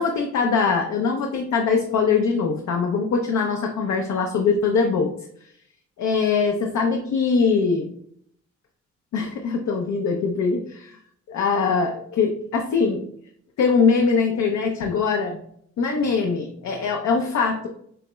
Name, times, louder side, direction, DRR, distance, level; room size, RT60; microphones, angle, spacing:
voice 1, 0.0-5.1 6.0-7.9 9.1-10.9 11.3-13.1 13.6-15.4 15.8-17.7, left 5 dB, 65° left, 2 dB, 0.7 m, -22 dB
6.9 x 2.9 x 2.2 m, 0.66 s
cardioid pair, 90°, 30 cm